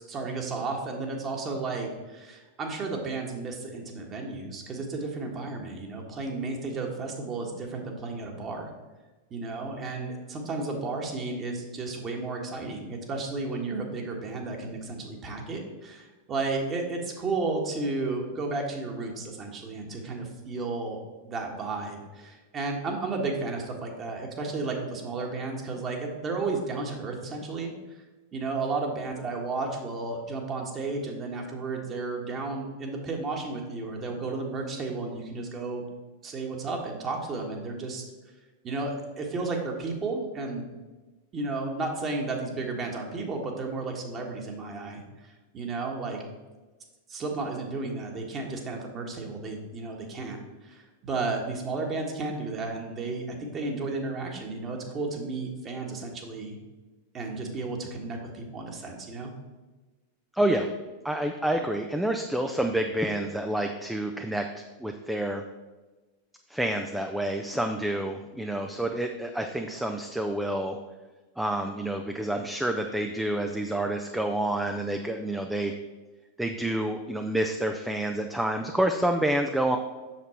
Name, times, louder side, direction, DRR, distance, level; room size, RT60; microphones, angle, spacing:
voice 1, 0.1-8.7 9.3-21.0 21.2-27.7 28.3-35.8 36.2-38.0 38.6-40.7 41.3-46.2 47.1-56.6 57.1-59.3, right 3 dB, 25° right, 1 dB, 1.5 m, -33 dB
voice 2, 60.3-60.7 61.0-65.4 66.5-70.8 71.4-75.7 76.4-79.8, right 1 dB, 5° right, 4 dB, 0.5 m, -28 dB
7.5 x 6.6 x 4.4 m, 1.2 s
figure-of-eight pair, 90°, 0 cm